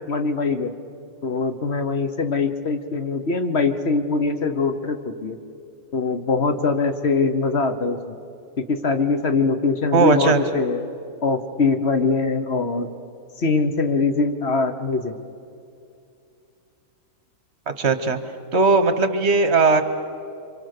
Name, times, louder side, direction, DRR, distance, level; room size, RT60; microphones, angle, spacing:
voice 1, 0.1-0.7 1.2-5.4 5.9-8.2 8.6-10.8 11.2-12.9 13.4-15.1, left 4 dB, 50° left, 7 dB, 1.3 m, -22 dB
voice 2, 9.9-10.4 17.7-18.2 18.5-19.8, right 3 dB, 55° right, 9 dB, 1.4 m, -18 dB
27.5 x 24.5 x 6.6 m, 2.5 s
omnidirectional pair, 1.4 m